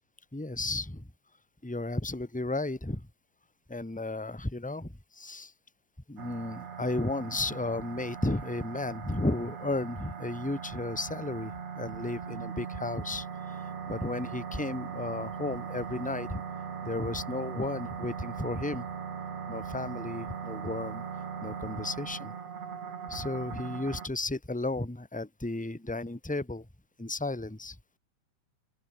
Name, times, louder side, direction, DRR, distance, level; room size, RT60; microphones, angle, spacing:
voice 1, 0.3-1.1 1.6-3.1 3.7-5.5 6.1-13.6 13.9-16.4 16.8-18.9 19.5-21.0 21.4-22.3 23.1-26.7 27.0-27.8, left 2 dB, 5° left, 1.7 m, -34 dB
sound 1, 6.2-24.1, right 6 dB, 55° right, 3.8 m, -39 dB
open air
omnidirectional pair, 3.5 m